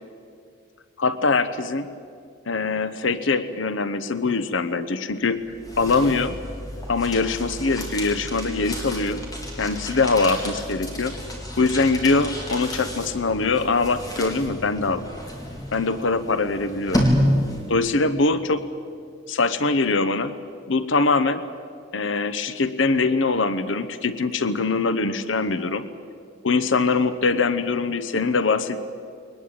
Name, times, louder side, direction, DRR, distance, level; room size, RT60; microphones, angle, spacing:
voice 1, 1.0-1.9 2.5-5.4 5.8-6.4 6.9-9.2 9.6-11.2 11.6-15.0 15.7-17.0 17.7-18.7 19.3-20.3 20.7-21.4 21.9-25.9 26.4-28.8, left 3 dB, 80° left, 12 dB, 1.0 m, -23 dB
sound 1, 5.3-17.9, equal, 20° left, 4.0 m, -30 dB
22.0 x 20.0 x 8.9 m, 2.3 s
head